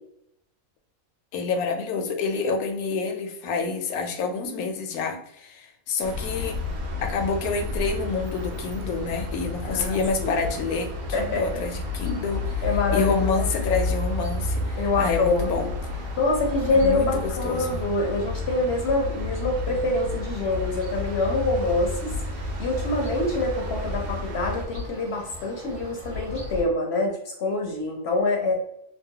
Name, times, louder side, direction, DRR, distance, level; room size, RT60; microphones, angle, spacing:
voice 1, 1.3-6.6 7.0-12.6 12.9-15.7 16.7-17.8, left 4 dB, 85° left, 5 dB, 1.0 m, -28 dB
sound 1, 6.0-24.7, left 3 dB, 85° right, 1.1 m, -31 dB
sound 2, 7.8-26.6, left 1 dB, 60° right, 1.1 m, -43 dB
voice 2, 9.7-10.3 11.1-11.4 12.6-13.3 14.8-15.7 16.2-28.5, left 2 dB, 60° left, 1 dB, 0.7 m, -25 dB
2.9 x 2.1 x 2.7 m, 0.78 s
omnidirectional pair, 1.5 m